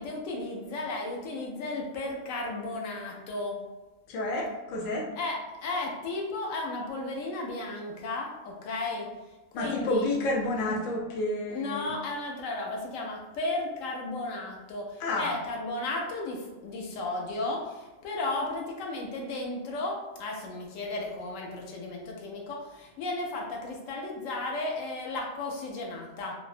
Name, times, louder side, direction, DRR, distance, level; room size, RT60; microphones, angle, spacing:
voice 1, 0.0-3.6 5.2-9.1 9.5-10.1 11.5-26.3, left 2 dB, 80° left, 0 dB, 1.0 m, -34 dB
voice 2, 4.1-5.1 9.5-12.0 15.0-15.3, left 1 dB, 60° left, -1 dB, 0.6 m, -30 dB
2.7 x 2.0 x 2.5 m, 1.1 s
omnidirectional pair, 1.4 m